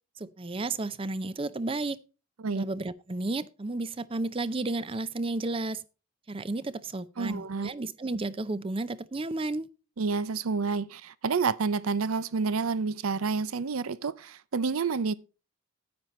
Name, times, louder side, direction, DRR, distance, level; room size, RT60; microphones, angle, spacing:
voice 1, 0.2-2.0 2.6-5.8 6.3-9.7, right 2 dB, 25° right, 0.5 m, -32 dB
voice 2, 7.2-7.7 10.0-15.1, right 4 dB, 80° right, 0.6 m, -29 dB
9.5 x 9.4 x 4.2 m
head